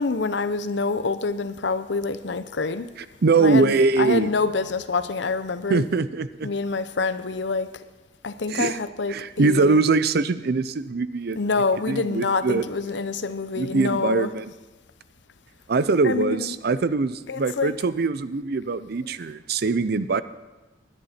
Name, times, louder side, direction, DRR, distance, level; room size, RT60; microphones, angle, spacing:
voice 1, 0.0-2.9 3.4-5.8 6.4-7.7 8.2-9.8 11.4-14.3 16.0-16.6 17.3-17.8 19.0-19.1, left 4 dB, 70° left, 12 dB, 0.7 m, -26 dB
voice 2, 3.2-4.3 5.7-6.5 8.5-8.8 9.1-11.4 11.9-12.7 13.6-14.5 15.7-20.2, right 4 dB, 60° right, 14 dB, 0.5 m, -22 dB
19.5 x 10.5 x 4.3 m, 1.1 s
head